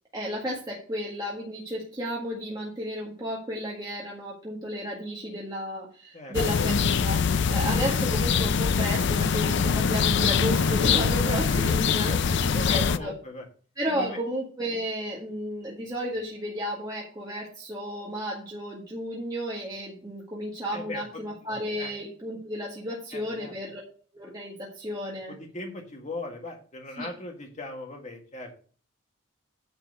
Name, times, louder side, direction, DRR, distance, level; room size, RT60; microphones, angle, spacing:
voice 1, 0.1-6.7 7.0-12.4 12.7-13.1 13.8-23.8 24.1-25.3 27.0-27.1, equal, 20° right, -5 dB, 1.7 m, -33 dB
sound 1, 6.3-13.0, left 6 dB, 55° left, 0.5 m, -23 dB
voice 2, 11.5-13.4 13.9-14.2 20.7-21.2 21.8-21.9 23.1-23.5 25.3-28.5, left 2 dB, 35° left, 2 dB, 1.8 m, -39 dB
9.6 x 4.4 x 6.4 m, 0.42 s
head